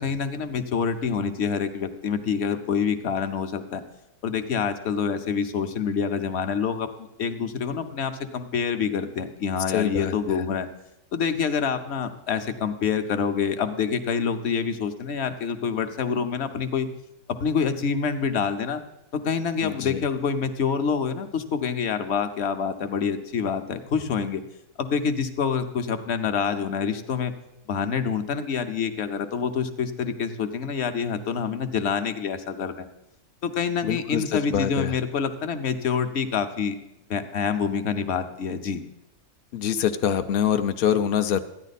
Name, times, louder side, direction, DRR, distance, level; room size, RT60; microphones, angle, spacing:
voice 1, 0.0-3.8 4.2-10.7 11.1-16.9 17.3-18.8 19.1-24.4 24.8-27.3 27.7-32.9 33.4-36.7 37.1-38.8, left 6 dB, 55° left, 9 dB, 0.9 m, -27 dB
voice 2, 9.7-10.4 19.6-20.0 33.8-35.0 39.5-41.4, left 9 dB, 70° left, 8 dB, 0.5 m, -25 dB
13.5 x 9.9 x 4.1 m, 0.87 s
omnidirectional pair, 1.5 m